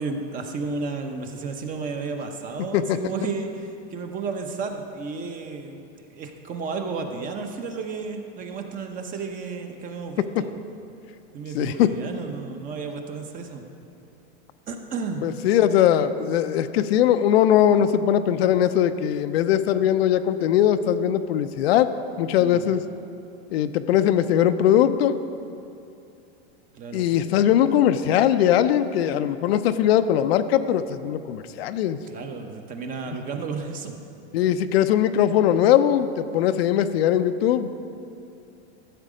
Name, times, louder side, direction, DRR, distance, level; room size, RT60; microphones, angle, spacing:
voice 1, 0.0-5.8 6.1-10.6 11.3-13.6 14.7-15.3 22.4-22.6 26.7-27.1 32.1-33.9, right 4 dB, 25° right, 5 dB, 0.8 m, -32 dB
voice 2, 11.5-12.0 15.2-21.9 22.2-22.8 23.5-25.2 26.9-32.0 34.3-37.7, left 10 dB, 70° left, 10 dB, 0.6 m, -20 dB
13.5 x 7.4 x 5.0 m, 2.7 s
supercardioid pair, 145°, 32 cm